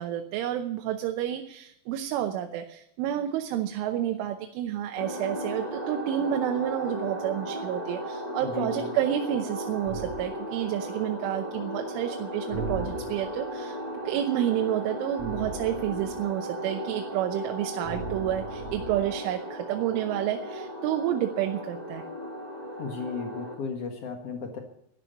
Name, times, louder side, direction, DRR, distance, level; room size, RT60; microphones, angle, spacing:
voice 1, 0.0-13.8 14.1-22.0, right 11 dB, 85° right, 6 dB, 3.4 m, -30 dB
sound 1, 5.0-23.5, equal, 35° left, 0.6 m, -36 dB
voice 2, 8.4-8.9 22.8-24.6, left 4 dB, 70° left, 3 dB, 1.4 m, -35 dB
sound 2, 9.8-10.3 12.5-13.4 15.2-16.3 17.8-19.2, right 2 dB, 10° right, 5.0 m, -37 dB
12.5 x 12.0 x 8.2 m, 0.74 s
omnidirectional pair, 5.5 m